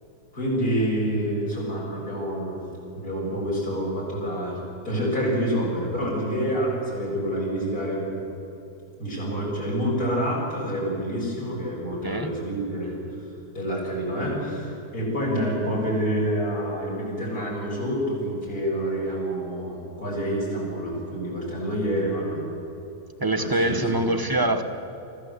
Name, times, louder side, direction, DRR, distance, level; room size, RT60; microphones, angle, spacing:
voice 1, 0.3-2.6 2.9-4.6 4.8-8.1 9.0-12.9 13.5-22.4 23.4-24.0, equal, 50° left, -4 dB, 7.3 m, -27 dB
voice 2, 23.2-24.6, right 1 dB, 15° right, 8 dB, 0.8 m, -24 dB
25.0 x 15.0 x 8.1 m, 2.9 s
omnidirectional pair, 2.0 m